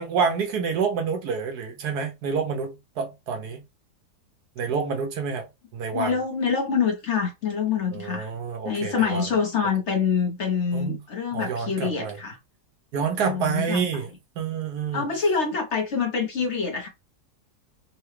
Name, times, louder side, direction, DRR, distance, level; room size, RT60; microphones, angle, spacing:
voice 1, 0.0-3.6 4.6-5.5 5.7-6.2 7.9-9.3 10.7-11.0 11.3-12.2 12.9-14.1 14.4-15.0, right 6 dB, 75° right, 1.3 m, -28 dB
voice 2, 5.9-8.3 8.6-12.4 13.2-13.8 14.9-16.9, left 6 dB, 50° left, 1.0 m, -26 dB
3.6 x 2.3 x 3.1 m
omnidirectional pair, 1.7 m